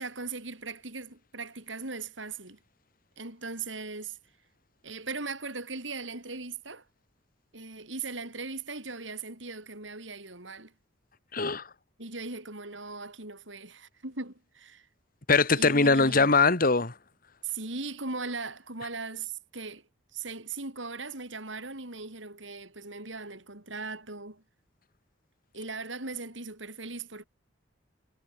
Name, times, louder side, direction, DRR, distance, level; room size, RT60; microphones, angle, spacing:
voice 1, 0.0-2.6 3.2-4.2 4.8-6.9 7.5-10.7 12.0-14.9 15.6-16.3 17.4-19.8 20.1-24.4 25.5-27.2, right 3 dB, 80° right, 7.1 m, -39 dB
voice 2, 11.3-11.7 15.3-16.9, left 4 dB, 50° left, 2.0 m, -22 dB
head